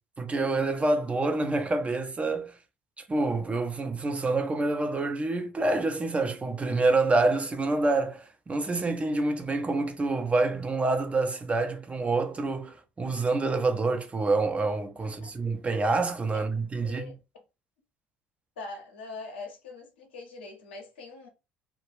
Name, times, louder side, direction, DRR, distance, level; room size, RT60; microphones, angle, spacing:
voice 1, 0.2-2.6 3.0-17.1, right 3 dB, 20° right, 0.5 m, -27 dB
voice 2, 15.0-15.3 16.3-16.4 16.8-17.1 18.6-21.3, left 3 dB, 75° left, 0.7 m, -42 dB
2.3 x 2.1 x 3.2 m
figure-of-eight pair, 55°, 6 cm